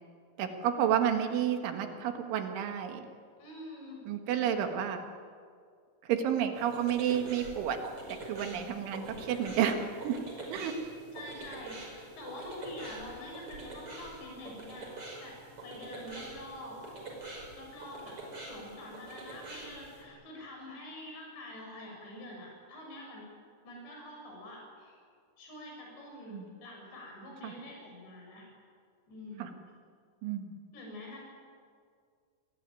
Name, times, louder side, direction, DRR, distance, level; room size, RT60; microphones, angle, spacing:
voice 1, 0.4-3.0 4.1-5.0 6.0-7.8 8.1-10.2 10.5-10.8 26.3-26.5 27.4-27.5 29.4-29.5 30.2-30.6, right 9 dB, 90° right, 6 dB, 4.2 m, -31 dB
voice 2, 3.4-4.0 11.1-15.4 15.6-16.8 17.6-18.2 18.5-23.3 23.6-25.0 25.4-28.5 29.1-29.5 30.7-31.2, left 1 dB, 70° left, -1 dB, 8.8 m, -46 dB
sound 1, 6.6-20.0, right 2 dB, 30° right, 6.1 m, -45 dB
28.5 x 20.5 x 9.2 m, 2.1 s
omnidirectional pair, 5.3 m